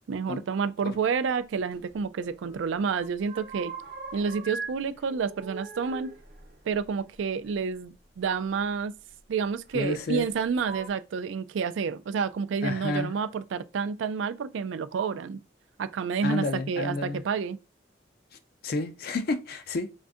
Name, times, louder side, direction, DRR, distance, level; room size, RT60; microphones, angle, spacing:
voice 1, 0.1-3.7 4.1-6.1 6.7-8.9 9.3-15.4 15.8-17.6, right 6 dB, 85° right, 0.4 m, -29 dB
sound 1, 1.7-2.6 2.9-4.8 5.0-7.5 8.6-8.7 9.7-10.2 10.6-10.9, right 4 dB, 50° right, 0.7 m, -41 dB
voice 2, 9.7-10.3 12.6-13.1 16.2-17.2 18.6-19.9, left 3 dB, 55° left, 0.4 m, -30 dB
2.5 x 2.3 x 3.5 m
head